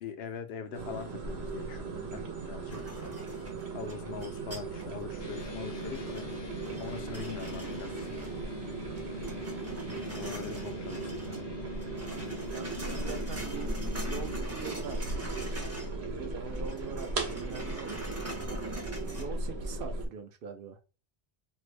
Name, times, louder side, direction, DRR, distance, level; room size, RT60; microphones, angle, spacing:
voice 1, 0.0-2.8 3.7-6.3 6.7-8.1 10.1-11.5, left 7 dB, 80° left, 7 dB, 0.8 m, -42 dB
sound 1, 0.7-20.1, right 3 dB, 80° right, 1.0 m, -37 dB
sound 2, 2.7-5.0 5.4-8.6 8.9-11.4 11.7-16.0 16.3-19.2, right 1 dB, 20° right, 0.5 m, -44 dB
sound 3, 5.2-14.4, left 7 dB, 35° left, 0.5 m, -45 dB
voice 2, 12.5-13.7 14.0-15.0 15.7-18.6 19.2-20.8, right 6 dB, 65° right, 7 dB, 0.7 m, -43 dB
2.7 x 2.5 x 3.2 m, 0.31 s
omnidirectional pair, 1.0 m